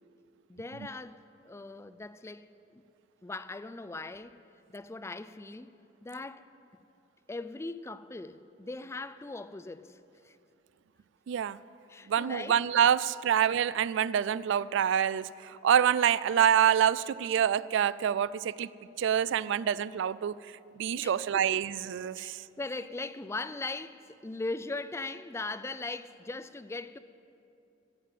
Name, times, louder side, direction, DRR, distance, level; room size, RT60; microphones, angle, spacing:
voice 1, 0.5-2.8 3.2-4.4 4.7-6.5 7.3-10.4 11.9-12.6 21.0-21.6 22.0-22.3 22.6-27.0, left 3 dB, 15° left, 0.3 m, -40 dB
voice 2, 11.3-11.6 12.1-15.3 15.6-18.7 19.0-20.4 20.8-22.4, right 9 dB, 65° right, 0.3 m, -26 dB
14.0 x 9.2 x 7.5 m
head